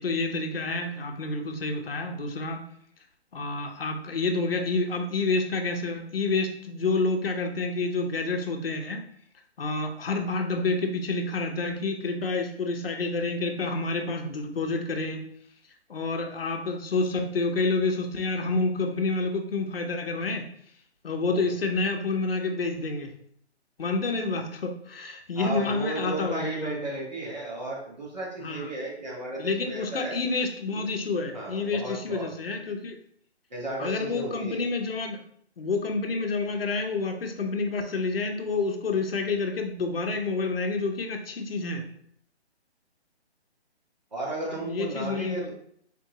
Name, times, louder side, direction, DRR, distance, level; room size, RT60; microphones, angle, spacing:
voice 1, 0.0-2.6 3.3-9.0 9.6-15.2 15.9-20.5 21.0-23.1 23.8-26.8 28.4-28.7 29.4-33.0 33.8-35.2 35.6-41.9 44.4-45.5, left 3 dB, 60° left, 4 dB, 0.8 m, -28 dB
voice 2, 25.3-30.2 31.3-32.3 33.5-34.6 44.1-45.5, right 2 dB, 40° right, -6 dB, 1.3 m, -34 dB
3.7 x 3.4 x 2.9 m, 0.65 s
hypercardioid pair, 175°, 34 cm